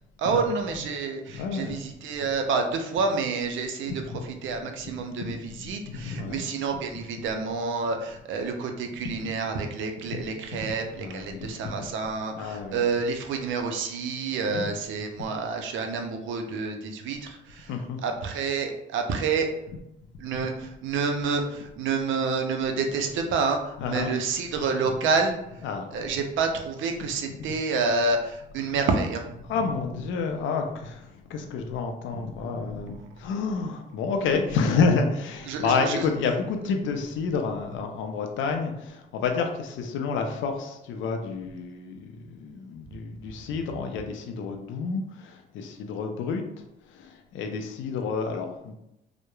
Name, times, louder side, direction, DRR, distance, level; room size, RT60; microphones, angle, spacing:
voice 1, 0.2-4.0 4.4-17.7 18.0-19.5 20.2-25.4 25.9-29.3 35.5-36.0, right 4 dB, 75° right, 4 dB, 0.5 m, -28 dB
voice 2, 1.3-1.8 3.9-4.3 4.9-6.5 9.0-9.2 10.0-10.2 10.5-10.7 11.0-11.8 12.3-12.8 14.4-14.7 17.7-18.0 23.8-24.1 24.9-25.0 25.6-26.0 27.4-27.5 28.7-28.8 29.5-48.7, left 4 dB, 75° left, 4 dB, 0.4 m, -30 dB
2.9 x 2.0 x 2.2 m, 0.86 s
cardioid pair, 90°, 20 cm